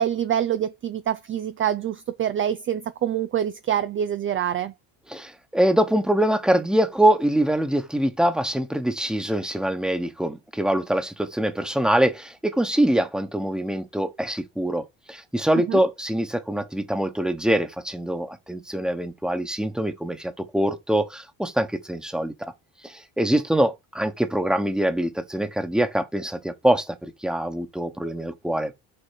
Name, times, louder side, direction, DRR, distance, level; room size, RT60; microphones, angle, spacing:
voice 1, 0.0-4.7 15.5-15.8, right 10 dB, 30° right, 0.4 m, -26 dB
voice 2, 5.1-22.3 22.8-28.7, right 1 dB, ahead, 1.1 m, -24 dB
6.7 x 3.8 x 6.4 m
cardioid pair, 110°, 47 cm